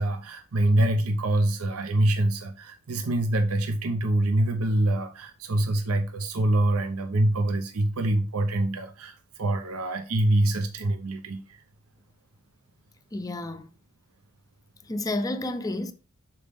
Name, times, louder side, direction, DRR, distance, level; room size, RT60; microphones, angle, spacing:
voice 1, 0.0-11.6, right 1 dB, 70° right, 0.6 m, -25 dB
voice 2, 13.1-13.7 14.9-15.9, left 2 dB, 15° left, 0.5 m, -30 dB
6.8 x 4.2 x 3.5 m
head